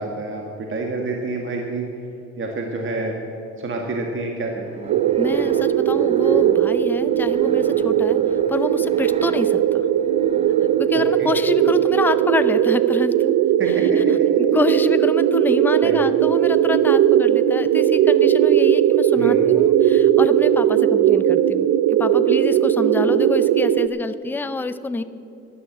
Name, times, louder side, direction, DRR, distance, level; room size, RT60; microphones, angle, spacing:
voice 1, 0.0-1.9 2.4-3.1 3.6-4.9 10.9-11.3 13.6-14.3 15.8-16.0 19.1-19.4, right 2 dB, 40° right, 1 dB, 1.8 m, -28 dB
sound 1, 4.6-12.7, right 4 dB, 20° right, 0.8 m, -39 dB
sound 2, 4.9-23.9, right 10 dB, 75° right, 0.6 m, -18 dB
voice 2, 5.2-8.2 8.5-9.6 10.8-13.3 14.0-14.1 14.4-25.0, left 3 dB, 5° left, 12 dB, 0.5 m, -27 dB
11.5 x 11.0 x 7.3 m, 2.8 s
cardioid pair, 90°, 30 cm